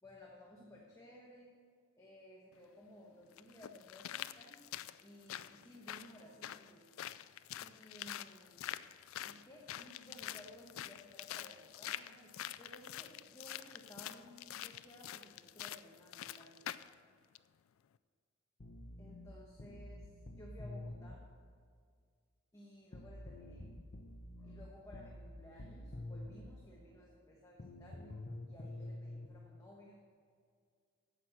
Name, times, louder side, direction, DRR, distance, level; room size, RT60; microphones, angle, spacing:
voice 1, 0.0-1.6 2.0-4.7 5.0-6.9 7.6-16.7 19.0-21.3 22.5-23.8 24.4-30.0, left 1 dB, 15° left, -3 dB, 1.1 m, -57 dB
sound 1, 2.5-2.6 3.4-16.9 17.3-17.4, left 12 dB, 80° left, 0.3 m, -46 dB
sound 2, 18.6-21.2 22.9-26.5 27.6-29.3, left 1 dB, 45° left, 0.8 m, -48 dB
9.4 x 7.4 x 6.4 m, 2.1 s
head